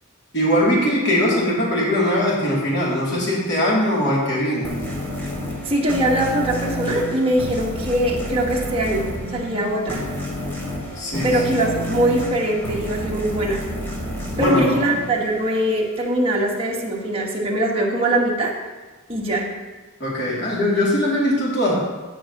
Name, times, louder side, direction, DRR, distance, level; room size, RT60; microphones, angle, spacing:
voice 1, 0.3-4.7 11.0-11.4 14.4-15.0 20.0-21.8, equal, 55° left, -5 dB, 2.8 m, -20 dB
sound 1, 4.6-15.8, equal, 10° left, 2.1 m, -30 dB
voice 2, 5.6-10.0 11.2-13.6 14.4-18.5 19.1-19.5, right 1 dB, 25° right, -3 dB, 1.5 m, -22 dB
16.0 x 5.5 x 3.0 m, 1.2 s
head